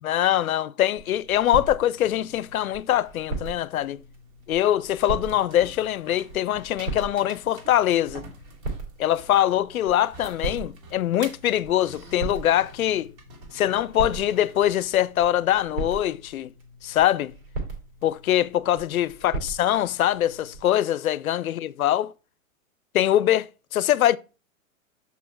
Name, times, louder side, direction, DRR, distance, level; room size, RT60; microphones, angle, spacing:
voice 1, 0.0-4.0 4.5-8.2 9.0-13.1 13.5-16.5 16.8-17.3 18.0-22.1 22.9-24.2, left 12 dB, 85° left, 0.6 m, -23 dB
sound 1, 1.0-20.6, right 2 dB, 75° right, 3.8 m, -38 dB
sound 2, 1.7-15.1, right 2 dB, 50° right, 2.3 m, -49 dB
6.2 x 5.7 x 4.5 m
hypercardioid pair, 110°, 41 cm